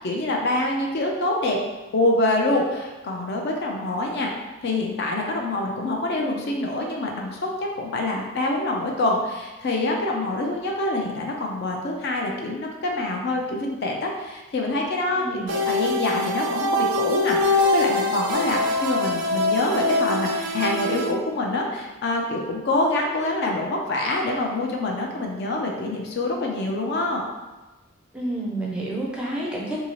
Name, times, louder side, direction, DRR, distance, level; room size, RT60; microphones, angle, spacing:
voice 1, 0.0-1.6 1.9-4.3 4.6-27.2, left 2 dB, 50° left, 0 dB, 0.4 m, -25 dB
voice 2, 15.2-15.6 28.1-29.8, right 1 dB, 5° right, -4 dB, 0.4 m, -29 dB
sound 1, 15.5-21.1, left 2 dB, 85° right, 0.4 m, -24 dB
2.8 x 2.7 x 2.9 m, 1.1 s
head